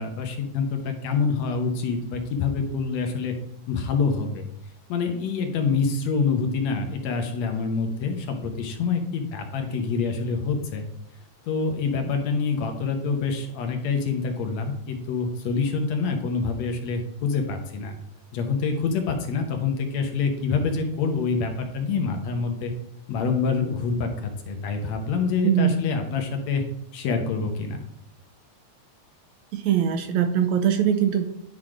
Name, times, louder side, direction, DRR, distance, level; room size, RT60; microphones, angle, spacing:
voice 1, 0.0-3.4 3.7-4.5 4.9-10.8 11.5-18.0 18.3-22.7 23.1-26.6 26.9-27.8, left 5 dB, 70° left, 4 dB, 2.0 m, -26 dB
voice 2, 25.4-25.8 29.5-31.3, right 9 dB, 80° right, 7 dB, 1.7 m, -22 dB
10.5 x 4.1 x 4.9 m, 0.77 s
omnidirectional pair, 3.5 m